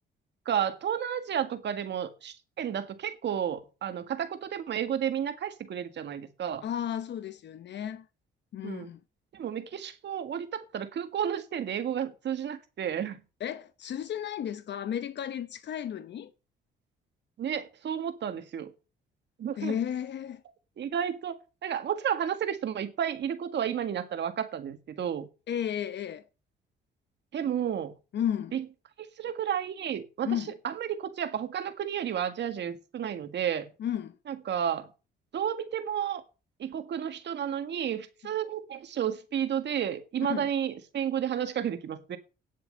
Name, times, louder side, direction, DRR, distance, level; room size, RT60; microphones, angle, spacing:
voice 1, 0.5-6.7 8.6-8.9 9.3-13.2 17.4-18.7 19.4-19.8 20.8-21.4 21.6-25.3 27.3-27.9 28.5-28.7 29.0-33.7 34.3-34.9 35.3-36.2 36.6-42.2, right 9 dB, 60° right, 1.8 m, -32 dB
voice 2, 6.6-8.1 8.5-9.0 13.4-16.3 19.6-20.4 25.5-26.2 28.1-28.5 30.3-30.5 33.8-34.1 40.3-40.5, left 9 dB, 60° left, 0.8 m, -33 dB
9.8 x 7.5 x 6.5 m
cardioid pair, 90°, 20 cm